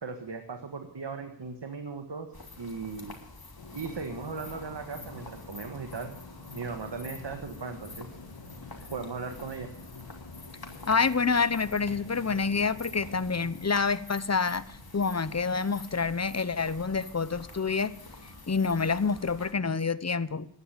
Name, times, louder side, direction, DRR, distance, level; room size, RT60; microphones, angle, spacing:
voice 1, 0.0-2.3 2.6-3.2 3.7-6.1 6.5-8.1 8.9-9.7, right 4 dB, 70° right, 1.7 m, -37 dB
sound 1, 2.3-19.5, left 3 dB, 55° left, 3.1 m, -47 dB
sound 2, 3.6-13.7, left 4 dB, 70° left, 2.5 m, -48 dB
voice 2, 10.9-14.6 14.9-17.9 18.5-20.5, left 5 dB, 35° left, 1.0 m, -27 dB
15.0 x 11.0 x 6.8 m
cardioid pair, 40°, 44 cm